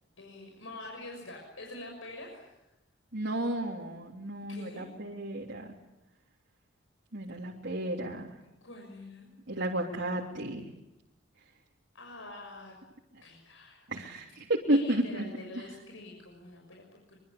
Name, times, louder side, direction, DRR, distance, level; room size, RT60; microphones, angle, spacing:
voice 1, 0.2-2.6 4.5-4.8 8.6-9.3 11.9-12.7 13.2-13.8 14.7-17.2, left 2 dB, 85° left, 1 dB, 6.7 m, -46 dB
voice 2, 3.1-5.6 7.1-8.3 9.5-10.6 13.9-15.2 15.5-15.6, right 1 dB, 60° right, -3 dB, 3.2 m, -32 dB
25.0 x 24.5 x 8.6 m, 0.92 s
head